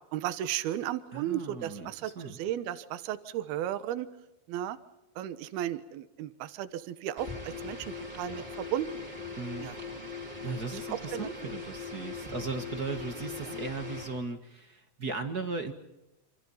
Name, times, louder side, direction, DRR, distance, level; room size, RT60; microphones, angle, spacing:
voice 1, 0.1-4.1 4.5-4.8 5.2-7.8 8.1-9.0 9.6-9.8 10.9-11.3 13.5-13.6, right 12 dB, 75° right, 13 dB, 3.0 m, -34 dB
voice 2, 1.1-2.4 9.4-9.7 10.4-15.7, right 4 dB, 45° right, 7 dB, 1.3 m, -37 dB
sound 1, 7.2-14.2, left 4 dB, 10° right, 2.8 m, -40 dB
27.5 x 27.5 x 5.7 m, 0.91 s
omnidirectional pair, 4.5 m